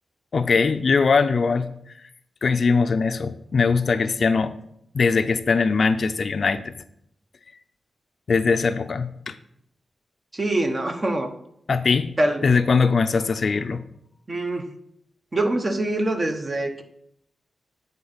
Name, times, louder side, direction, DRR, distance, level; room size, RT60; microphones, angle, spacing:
voice 1, 0.3-1.7 2.4-4.5 4.9-6.7 8.3-9.4 11.7-12.1 12.4-13.8, left 4 dB, 60° left, 11 dB, 0.4 m, -21 dB
voice 2, 10.3-11.3 12.2-12.4 14.3-14.7 15.3-16.8, right 1 dB, 30° right, 6 dB, 1.0 m, -24 dB
9.3 x 3.9 x 5.6 m, 0.72 s
cardioid pair, 80°, 0 cm